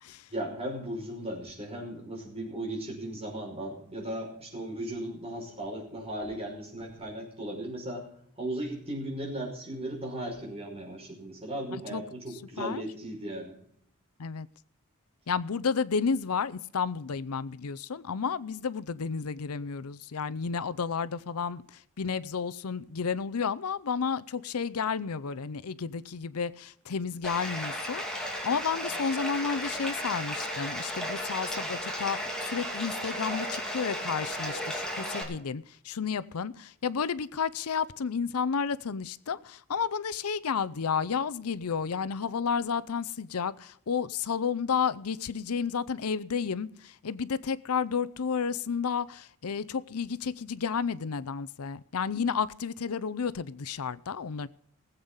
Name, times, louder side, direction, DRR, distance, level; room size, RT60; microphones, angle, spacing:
voice 1, 0.3-8.1 8.4-13.6, right 1 dB, 25° right, 5.5 m, -36 dB
voice 2, 15.3-54.5, left 6 dB, 80° left, 0.6 m, -31 dB
Bathtub (filling or washing), 27.2-35.2, equal, 5° left, 2.6 m, -34 dB
19.0 x 8.1 x 5.5 m
head